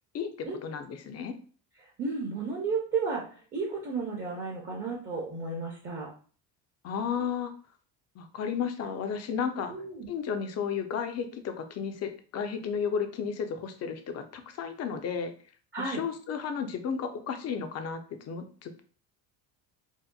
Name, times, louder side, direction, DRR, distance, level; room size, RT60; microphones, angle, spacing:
voice 1, 0.1-1.3 6.8-7.5 8.2-9.7 10.1-15.3 15.8-18.0 18.3-18.8, left 6 dB, 40° left, 7 dB, 0.4 m, -33 dB
voice 2, 1.8-6.1 9.7-10.1 15.7-16.0, right 4 dB, 25° right, -1 dB, 0.6 m, -33 dB
2.8 x 2.1 x 2.2 m, 0.41 s
supercardioid pair, 85°, 43 cm